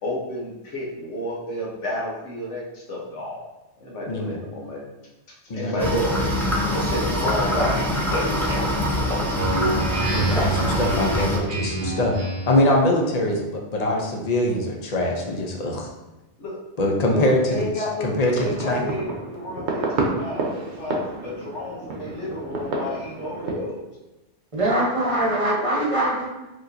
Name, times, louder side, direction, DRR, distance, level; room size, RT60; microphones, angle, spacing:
voice 1, 0.0-3.4 3.8-4.8 5.4-6.3 6.6-9.4 16.4-16.6 17.0-23.8, left 1 dB, 75° left, -3 dB, 1.3 m, -31 dB
voice 2, 4.1-4.4 5.5-6.0 10.1-12.1 12.5-15.9 16.8-18.9, left 1 dB, 40° left, 0 dB, 0.7 m, -23 dB
sound 1, 5.8-11.4, left 1 dB, ahead, 0.4 m, -24 dB
Speech synthesizer, 9.3-12.7, right 2 dB, 50° right, 0.8 m, -27 dB
sound 2, 18.1-23.5, right 3 dB, 70° right, 1.0 m, -30 dB
voice 3, 24.5-26.3, right 1 dB, 30° right, -5 dB, 1.0 m, -22 dB
4.9 x 3.1 x 2.6 m, 1.0 s
omnidirectional pair, 1.2 m